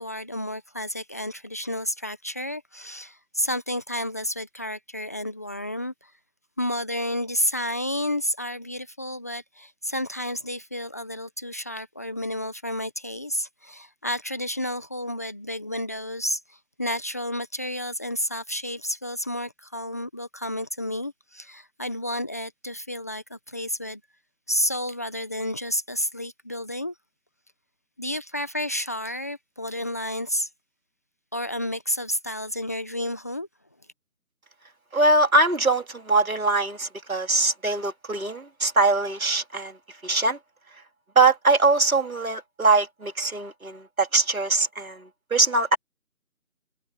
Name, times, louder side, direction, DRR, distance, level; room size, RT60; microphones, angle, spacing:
voice 1, 0.0-6.1 6.6-24.0 24.5-26.9 28.0-30.5 31.3-33.5, left 1 dB, 10° left, 1.4 m, -31 dB
voice 2, 34.9-39.8 40.0-40.4 41.1-45.8, right 3 dB, 65° right, 3.4 m, -22 dB
figure-of-eight pair, 165°, 45 cm